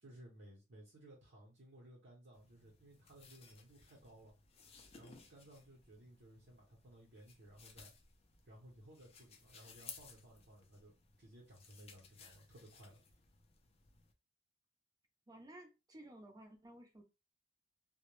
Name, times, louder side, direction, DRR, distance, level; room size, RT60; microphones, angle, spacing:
voice 1, 0.0-4.3 4.9-7.9 8.4-10.9 11.2-13.0, right 1 dB, 65° right, 0.7 m, -59 dB
sound 1, 2.3-14.1, left 5 dB, 30° left, 0.4 m, -60 dB
voice 2, 15.3-17.0, right 1 dB, 20° right, 0.6 m, -55 dB
2.2 x 2.0 x 3.0 m
head